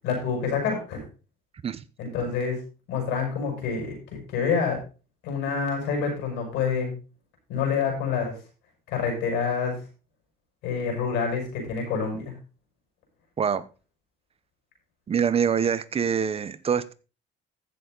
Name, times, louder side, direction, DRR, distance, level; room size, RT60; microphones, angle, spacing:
voice 1, 0.0-1.0 2.0-2.6 2.9-4.8 5.2-6.9 7.5-8.3 8.9-9.8 10.6-12.3, left 5 dB, 90° left, 2 dB, 6.3 m, -27 dB
voice 2, 15.1-16.9, right 7 dB, 35° right, 15 dB, 0.9 m, -25 dB
15.0 x 7.1 x 4.0 m, 0.34 s
cardioid pair, 110°, 17 cm